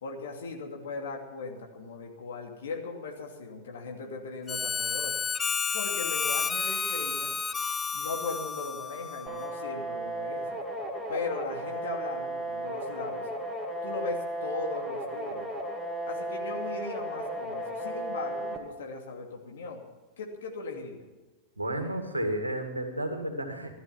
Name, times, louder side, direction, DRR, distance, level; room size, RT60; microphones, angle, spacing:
voice 1, 0.0-5.2 5.7-7.3 7.9-10.6 11.1-13.3 13.8-15.5 16.1-19.8 20.2-21.1, left 3 dB, 60° left, 1 dB, 2.7 m, -38 dB
Harmonica, 4.5-9.7, left 5 dB, 15° left, 0.5 m, -31 dB
sound 1, 9.3-18.6, right 1 dB, 5° right, 2.5 m, -35 dB
voice 2, 21.6-23.7, right 1 dB, 85° right, 5 dB, 2.1 m, -32 dB
15.5 x 13.0 x 5.8 m, 1.2 s
figure-of-eight pair, 90°, 0 cm